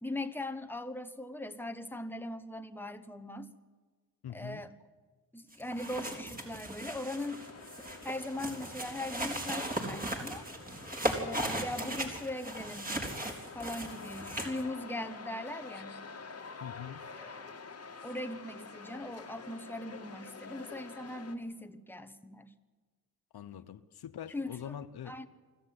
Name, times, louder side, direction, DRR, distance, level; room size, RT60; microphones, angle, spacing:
voice 1, 0.0-3.5 4.3-4.7 5.3-7.4 8.0-10.5 11.1-13.0 13.5-16.0 17.0-17.5 18.0-22.5 24.3-24.8 25.0-25.3, left 1 dB, 5° left, 8 dB, 1.4 m, -40 dB
voice 2, 4.2-4.6 16.6-17.0 23.3-25.2, left 9 dB, 80° left, 12 dB, 1.0 m, -43 dB
sound 1, 5.5-14.6, right 1 dB, 20° right, 3.9 m, -37 dB
sound 2, 7.1-21.4, left 4 dB, 40° left, 1.9 m, -48 dB
24.5 x 14.5 x 9.5 m, 1.4 s
cardioid pair, 80°, 38 cm